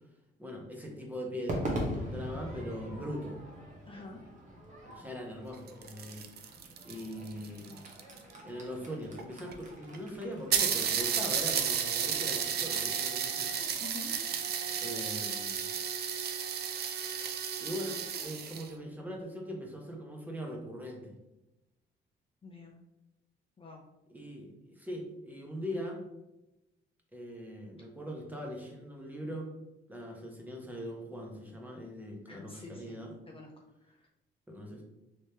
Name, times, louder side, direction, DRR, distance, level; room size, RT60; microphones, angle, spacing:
voice 1, 0.4-3.4 4.8-7.8 8.4-13.5 14.8-15.7 17.6-21.1 24.1-26.0 27.1-29.5 29.9-33.2 34.5-34.8, equal, 10° right, 0 dB, 0.8 m, -41 dB
Crowd / Fireworks, 1.5-15.9, equal, 40° right, 1.0 m, -43 dB
voice 2, 3.9-4.2 13.8-14.1 22.4-22.8 23.6-23.8 32.3-32.8 33.3-33.5 33.9-34.0, left 4 dB, 25° left, -1 dB, 0.5 m, -47 dB
sound 1, 5.5-8.3 9.2-9.3 9.5-9.6 9.9-10.0 10.5-18.7, right 8 dB, 55° right, 0.4 m, -33 dB
3.3 x 3.0 x 2.8 m, 0.94 s
cardioid pair, 90°, 20 cm